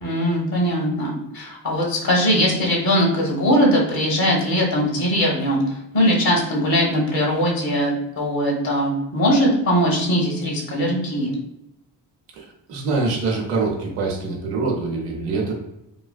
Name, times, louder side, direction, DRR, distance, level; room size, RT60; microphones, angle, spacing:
voice 1, 0.0-11.3, equal, 55° left, -2 dB, 1.3 m, -20 dB
voice 2, 12.3-15.5, right 3 dB, 85° right, -1 dB, 0.8 m, -24 dB
3.2 x 2.4 x 2.2 m, 0.85 s
hypercardioid pair, 50°, 43 cm